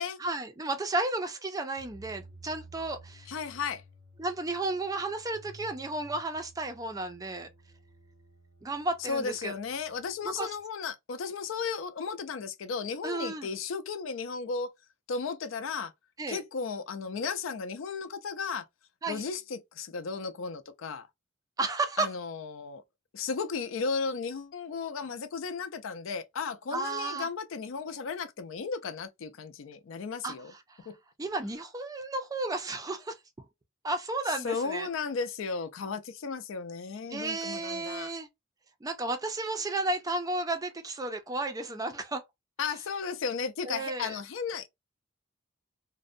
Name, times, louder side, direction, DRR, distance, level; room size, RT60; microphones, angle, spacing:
voice 1, 0.2-3.3 4.2-7.5 8.6-9.5 10.4-10.5 13.0-13.5 16.2-16.4 19.0-19.2 21.6-22.1 26.7-27.3 30.2-30.3 30.7-30.8 31.2-33.2 33.8-34.9 37.1-38.3 38.8-42.2 43.6-44.1, right 2 dB, 20° right, 0.4 m, -33 dB
sound 1, 1.8-10.6, right 2 dB, 90° right, 1.2 m, -54 dB
voice 2, 3.3-3.8 9.1-14.7 15.1-15.9 16.3-18.6 19.1-21.1 22.0-22.8 23.1-30.5 30.9-31.0 34.4-38.1 42.6-44.7, left 5 dB, 70° left, 0.4 m, -35 dB
2.6 x 2.1 x 2.5 m
head